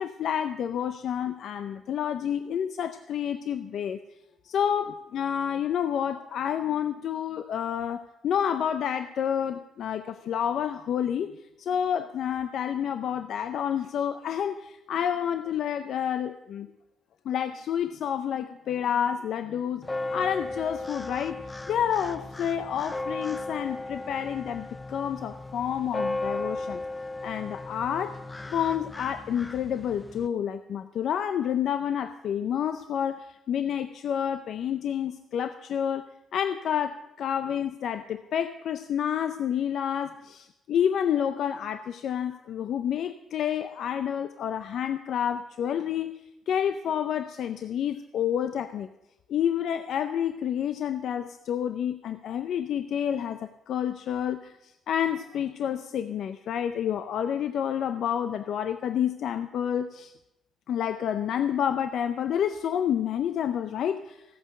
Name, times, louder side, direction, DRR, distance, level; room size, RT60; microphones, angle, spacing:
voice 1, 0.0-4.0 4.4-16.7 17.3-21.4 21.7-26.8 27.2-28.2 28.5-36.1 36.3-46.2 46.5-48.9 49.3-60.1 60.7-64.2, left 9 dB, 70° left, 10 dB, 0.6 m, -29 dB
sound 1, 19.8-30.3, left 2 dB, 15° left, 0.4 m, -36 dB
15.0 x 8.5 x 6.5 m, 0.92 s
cardioid pair, 90°, 0 cm